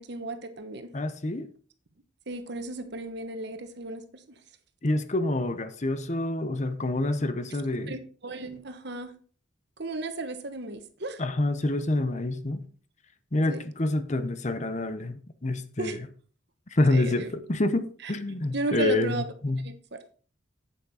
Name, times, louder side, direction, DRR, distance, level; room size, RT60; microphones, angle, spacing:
voice 1, 0.0-0.9 2.3-4.2 7.9-9.1 9.8-11.2 13.5-13.6 15.8-16.0 16.9-17.3 18.0-18.1 18.5-19.3 19.6-20.0, right 2 dB, 55° right, 8 dB, 1.2 m, -34 dB
voice 2, 0.9-1.5 4.8-8.0 11.2-12.6 13.3-16.0 16.7-19.6, left 2 dB, 35° left, 11 dB, 0.8 m, -27 dB
8.5 x 8.3 x 4.2 m, 0.41 s
head